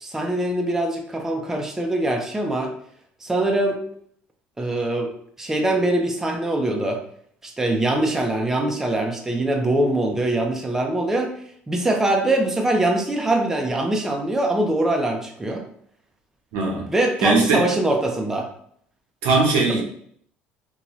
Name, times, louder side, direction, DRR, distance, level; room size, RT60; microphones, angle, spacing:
voice 1, 0.0-2.7 3.2-3.8 4.6-5.1 5.4-7.0 7.4-11.3 11.7-15.6 16.9-18.5, right 1 dB, 10° right, 2 dB, 0.5 m, -23 dB
voice 2, 16.5-16.9 17.2-17.6 19.2-19.8, right 3 dB, 85° right, -1 dB, 0.8 m, -20 dB
2.6 x 2.2 x 2.9 m, 0.65 s
cardioid pair, 110°, 4 cm